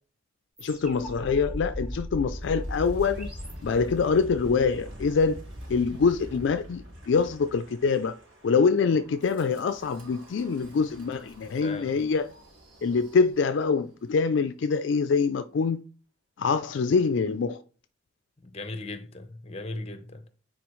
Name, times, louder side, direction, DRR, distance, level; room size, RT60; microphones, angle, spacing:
voice 1, 0.6-3.3 3.6-5.4 5.7-8.1 8.4-12.3 12.8-15.8 16.4-17.6, left 5 dB, 65° left, 0.3 m, -25 dB
sound 1, 0.6-4.2, equal, 5° right, 2.2 m, -50 dB
Wind, 0.8-13.7, equal, 80° right, 2.5 m, -41 dB
voice 2, 11.6-12.0 18.4-20.2, left 2 dB, 30° left, 0.7 m, -37 dB
9.2 x 4.2 x 3.1 m
head